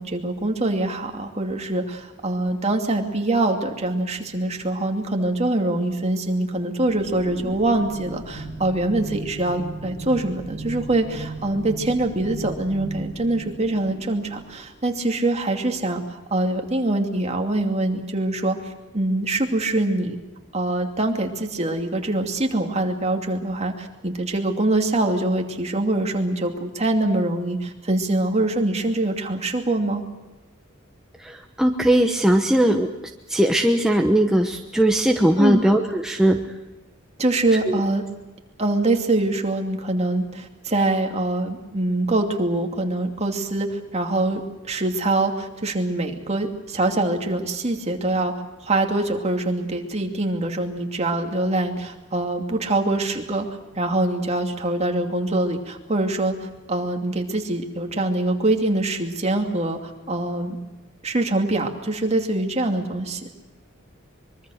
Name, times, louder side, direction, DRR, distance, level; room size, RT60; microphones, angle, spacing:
voice 1, 0.0-20.2 20.5-30.0 35.4-35.6 37.2-38.0 38.6-48.3 48.6-53.5 53.8-60.6 61.0-63.2, right 2 dB, 35° right, 3 dB, 2.7 m, -24 dB
sound 1, 6.8-15.1, right 2 dB, 45° left, 3.8 m, -37 dB
voice 2, 31.2-32.9 33.3-36.4 37.7-37.8, right 1 dB, 5° right, 2 dB, 1.1 m, -19 dB
24.5 x 23.0 x 6.6 m, 1.1 s
head